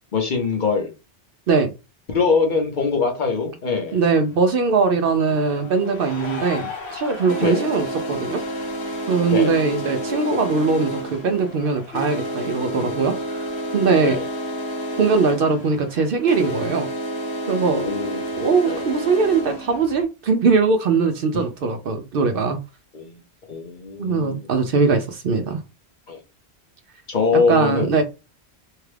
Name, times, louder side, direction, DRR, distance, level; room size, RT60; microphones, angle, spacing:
voice 1, 0.1-0.9 2.1-4.0 5.3-5.4 7.4-7.7 9.3-9.5 14.0-14.2 17.7-18.4 18.6-18.8 22.9-23.2 23.5-24.4 26.1-26.2 27.1-27.9, left 4 dB, 50° left, 0.9 m, -23 dB
sound 1, 3.9-4.0 5.0-20.0, right 1 dB, 75° left, 1.1 m, -30 dB
voice 2, 3.9-8.4 9.1-13.5 13.7-14.2 15.0-16.9 17.5-17.8 18.4-22.6 24.0-25.6 27.5-28.0, right 4 dB, 65° right, 0.7 m, -21 dB
2.8 x 2.3 x 3.2 m
omnidirectional pair, 1.1 m